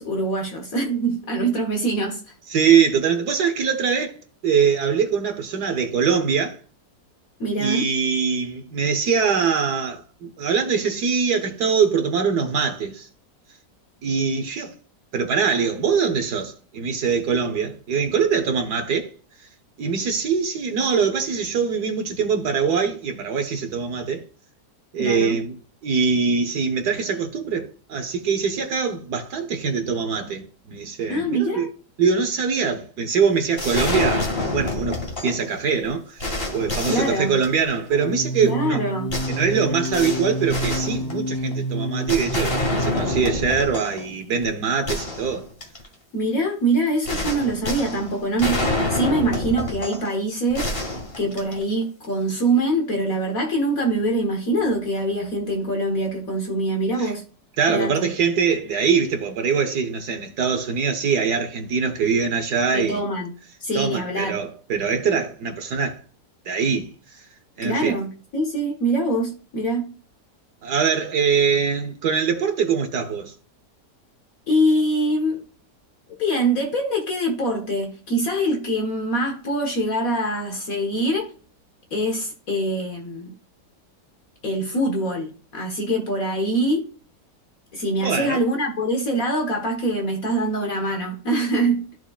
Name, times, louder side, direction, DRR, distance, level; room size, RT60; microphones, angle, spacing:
voice 1, 0.0-2.2 7.4-7.9 25.0-25.4 31.1-31.7 36.9-37.4 38.4-39.2 46.1-50.7 51.2-57.2 57.7-58.1 62.7-63.3 63.6-64.4 67.6-69.9 74.5-75.4 76.2-81.3 81.9-83.3 84.4-86.9 87.7-91.9, right 1 dB, 55° left, 1.8 m, -24 dB
voice 2, 2.5-6.6 7.6-13.1 14.0-14.7 15.1-19.1 19.8-24.2 24.9-25.5 25.8-31.7 32.0-36.3 36.5-38.8 39.3-45.5 57.0-57.1 57.6-63.0 63.7-66.0 66.4-66.9 67.6-68.0 70.6-73.3 88.0-88.4, right 6 dB, 70° right, 1.5 m, -23 dB
sound 1, 33.6-35.5 35.8-35.9 36.2-37.8 39.1-41.5 42.1-44.0 44.4-44.5 44.9-45.9 47.0-50.1 50.5-51.8, left 2 dB, 35° left, 2.1 m, -27 dB
sound 2, 37.9-43.6, right 1 dB, 20° left, 0.7 m, -29 dB
13.5 x 4.6 x 2.4 m
omnidirectional pair, 1.8 m